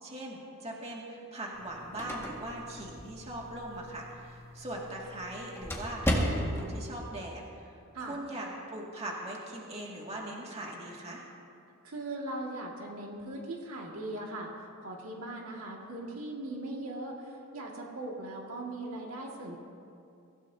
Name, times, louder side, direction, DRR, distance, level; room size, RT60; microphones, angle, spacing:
voice 1, 0.0-11.2, right 1 dB, 30° right, -3 dB, 2.2 m, -40 dB
sound 1, 1.5-6.8, equal, 10° left, 1.8 m, -35 dB
voice 2, 11.8-19.6, right 2 dB, 70° right, -1 dB, 2.1 m, -39 dB
23.5 x 16.0 x 2.8 m, 2.5 s
head